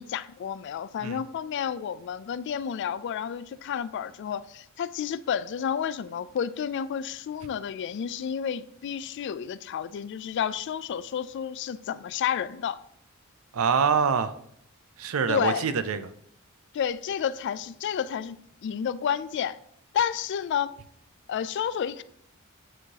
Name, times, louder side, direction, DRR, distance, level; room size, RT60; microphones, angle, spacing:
voice 1, 0.0-12.8 15.3-15.7 16.7-18.4 18.6-19.6 19.9-20.7 21.3-22.0, left 8 dB, 60° left, 0.3 m, -30 dB
voice 2, 13.5-14.3 15.0-16.1, right 6 dB, 80° right, 0.5 m, -25 dB
8.9 x 4.7 x 2.8 m
head